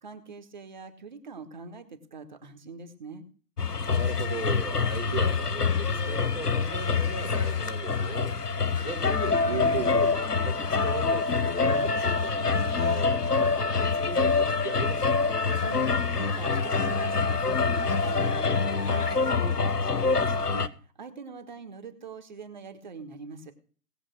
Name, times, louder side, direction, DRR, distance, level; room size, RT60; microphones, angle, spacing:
voice 1, 0.0-3.2 15.6-20.7 21.0-23.5, right 4 dB, 30° right, 7 dB, 1.4 m, -43 dB
sound 1, 3.6-20.7, left 4 dB, 70° left, 1.3 m, -26 dB
voice 2, 3.8-8.3 8.8-10.5 10.8-14.3 14.6-15.2, right 2 dB, 5° left, -9 dB, 0.7 m, -37 dB
18.5 x 7.3 x 6.1 m, 0.42 s
figure-of-eight pair, 145°, 48 cm